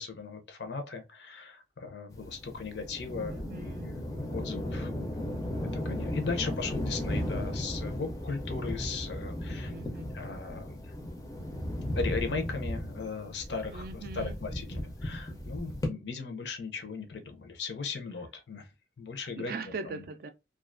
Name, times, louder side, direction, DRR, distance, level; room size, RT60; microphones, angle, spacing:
voice 1, 0.0-9.7 10.1-10.9 11.9-18.7 19.0-19.5 19.9-20.0, left 4 dB, 70° left, 0.5 m, -38 dB
sound 1, 2.1-15.9, left 1 dB, 20° left, 0.4 m, -36 dB
voice 2, 3.3-4.0 9.7-10.1 13.7-14.4 19.4-20.3, right 4 dB, 50° right, 0.3 m, -40 dB
2.3 x 2.3 x 2.4 m
head